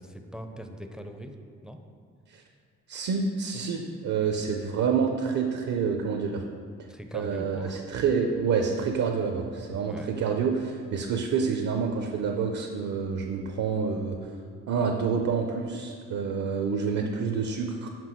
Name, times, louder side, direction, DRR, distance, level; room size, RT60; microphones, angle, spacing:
voice 1, 0.0-1.4 1.6-1.8 6.9-7.8 9.8-10.1, equal, ahead, 5 dB, 0.4 m, -41 dB
voice 2, 2.9-6.4 7.1-14.3 14.7-17.9, right 5 dB, 70° right, 3 dB, 0.6 m, -28 dB
6.0 x 5.2 x 4.5 m, 2.1 s
cardioid pair, 90°, 30 cm